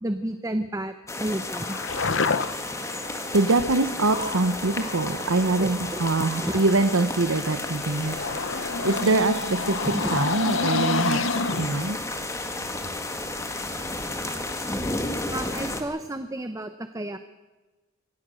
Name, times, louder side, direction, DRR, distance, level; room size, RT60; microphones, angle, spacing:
voice 1, 0.0-1.8 5.6-6.0 6.4-6.7 9.9-10.3 15.3-17.2, right 1 dB, 15° right, 9 dB, 0.8 m, -31 dB
sound 1, 1.1-15.8, left 2 dB, 15° left, 1.7 m, -32 dB
sound 2, 1.6-2.8 4.0-6.9 7.4-11.9, left 4 dB, 65° left, 1.0 m, -29 dB
voice 2, 2.8-8.2 8.5-11.3 11.6-12.0, right 3 dB, 85° right, 9 dB, 1.0 m, -24 dB
24.0 x 17.5 x 6.4 m, 1.2 s
head